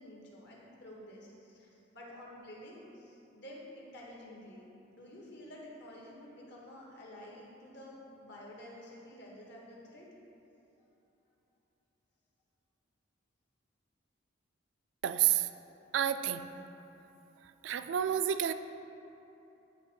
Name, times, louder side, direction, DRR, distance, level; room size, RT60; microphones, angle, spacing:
voice 1, 0.0-10.1, left 1 dB, 60° left, -3 dB, 1.5 m, -50 dB
voice 2, 15.0-15.5 15.9-16.5 17.6-18.5, right 10 dB, 65° right, 11 dB, 0.3 m, -29 dB
10.5 x 3.5 x 5.4 m, 2.9 s
head